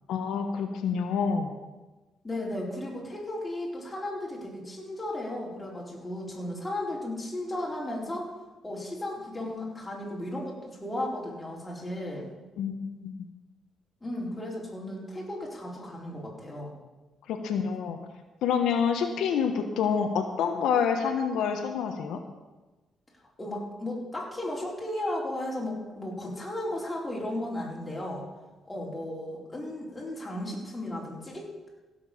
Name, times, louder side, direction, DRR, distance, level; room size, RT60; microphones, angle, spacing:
voice 1, 0.1-1.5 12.6-13.1 17.3-18.1 18.4-22.2, left 6 dB, 80° left, 4 dB, 1.2 m, -27 dB
voice 2, 2.2-8.3 8.6-12.3 14.0-16.7 23.4-28.2 28.6-31.5, left 1 dB, 15° left, -3 dB, 4.4 m, -35 dB
16.0 x 7.2 x 7.1 m, 1.2 s
cardioid pair, 90°, 0 cm